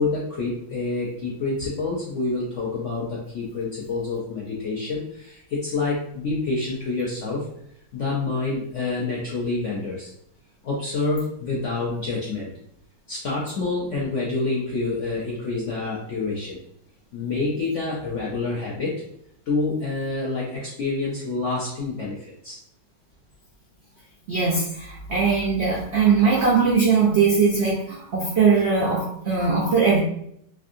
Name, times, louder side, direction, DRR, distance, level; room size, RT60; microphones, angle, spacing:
voice 1, 0.0-7.5 7.9-10.1 10.6-12.5 13.1-16.6 17.1-19.0 19.5-22.6, left 3 dB, 70° left, -4 dB, 0.7 m, -27 dB
voice 2, 24.3-30.0, right 5 dB, 80° right, -4 dB, 0.6 m, -20 dB
3.4 x 2.6 x 2.5 m, 0.71 s
omnidirectional pair, 1.9 m